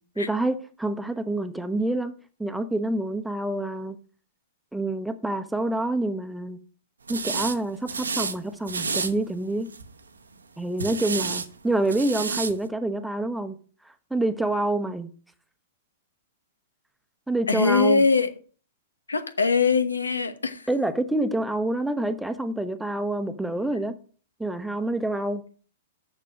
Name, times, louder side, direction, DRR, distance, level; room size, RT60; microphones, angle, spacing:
voice 1, 0.2-4.0 4.7-6.6 7.1-9.7 10.6-13.6 14.1-15.1 17.3-18.0 20.7-23.9 24.4-25.4, right 2 dB, 5° right, 0.9 m, -27 dB
sound 1, 7.1-7.6 7.9-8.4 8.7-9.1 9.7-10.0 10.8-11.5 11.9-12.5, right 4 dB, 85° right, 0.9 m, -29 dB
voice 2, 17.5-18.3 19.1-20.7, left 4 dB, 90° left, 1.1 m, -22 dB
6.8 x 6.3 x 6.4 m
hypercardioid pair, 110°, 0 cm